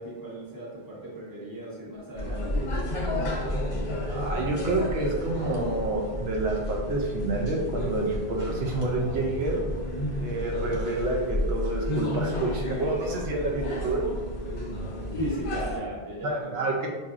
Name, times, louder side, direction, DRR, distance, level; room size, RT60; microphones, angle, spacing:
voice 1, 0.0-2.7 15.2-16.7, right 1 dB, 20° right, -6 dB, 0.9 m, -37 dB
sound 1, 2.1-15.8, left 1 dB, 35° left, 0.6 m, -31 dB
voice 2, 4.1-9.6 10.2-14.0 16.2-16.9, right 2 dB, 75° right, -1 dB, 0.8 m, -28 dB
5.4 x 2.6 x 2.4 m, 1.4 s
omnidirectional pair, 1.1 m